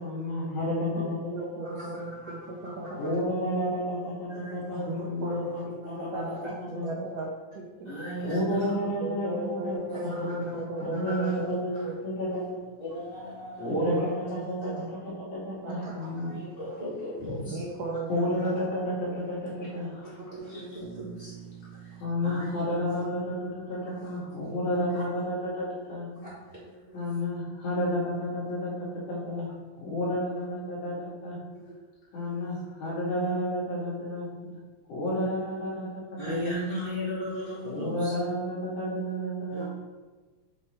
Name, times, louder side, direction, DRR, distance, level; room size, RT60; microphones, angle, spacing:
voice 1, 0.0-1.5 1.8-1.9 3.0-6.2 6.7-6.8 8.2-9.7 10.0-12.6 13.6-16.3 17.2-17.3 18.1-20.2 22.0-26.1 26.9-29.5 29.8-31.4 32.1-34.3 34.9-36.3 37.6-39.7, equal, 85° left, -7 dB, 3.4 m, -31 dB
voice 2, 1.0-3.5 4.8-8.0 9.0-12.2 13.9-15.0 15.4-16.0 16.3-16.4 17.5-18.7, right 2 dB, 75° right, -1 dB, 1.6 m, -37 dB
voice 3, 1.6-2.3 2.6-2.7 3.0-3.1 4.3-5.1 5.4-5.6 6.0-6.5 7.8-8.7 9.9-10.3 10.9-11.4 11.7-11.9 12.8-13.9 14.6-14.8 15.8-17.7 18.4-18.5 20.3-22.5 22.9-23.0 23.9-24.5 24.9-25.0 26.1-27.0 31.5-31.6 32.1-32.4 32.8-33.2 36.2-38.1 39.5-39.7, equal, 25° right, -10 dB, 1.3 m, -38 dB
Bass guitar, 20.8-24.9, right 7 dB, 60° left, 2.7 m, -49 dB
7.2 x 3.2 x 4.2 m, 1.3 s
omnidirectional pair, 3.4 m